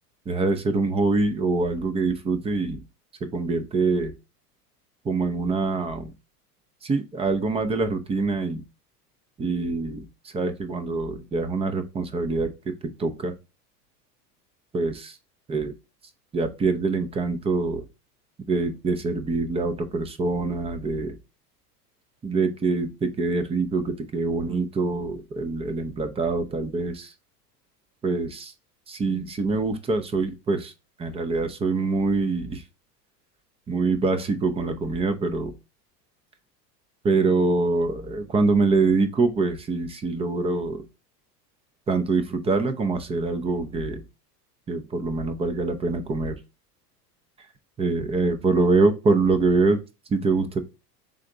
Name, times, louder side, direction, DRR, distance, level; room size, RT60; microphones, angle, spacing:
voice 1, 0.3-2.8 3.2-4.1 5.0-6.1 6.8-8.6 9.4-12.7 13.0-13.3 14.7-15.1 15.5-15.8 16.3-17.9 18.5-21.2 22.2-27.1 28.0-28.5 28.9-30.7 31.0-32.6 33.7-35.5 37.0-40.9 41.9-44.0 44.7-46.4 47.8-49.8 50.1-50.6, right 3 dB, 15° right, 0.4 m, -24 dB
3.8 x 3.3 x 3.9 m
hypercardioid pair, 90°, 48 cm